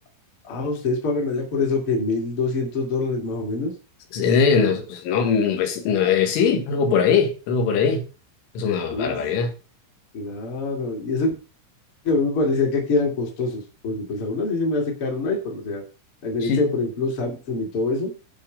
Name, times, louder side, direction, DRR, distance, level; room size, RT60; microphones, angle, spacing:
voice 1, 0.4-3.7 8.9-9.2 10.1-11.3 12.0-15.8 16.2-18.1, left 3 dB, 35° left, 2.4 m, -25 dB
voice 2, 4.1-8.0 8.6-9.5 16.4-16.6, left 6 dB, 75° left, 4.3 m, -21 dB
11.5 x 5.9 x 5.2 m
omnidirectional pair, 5.9 m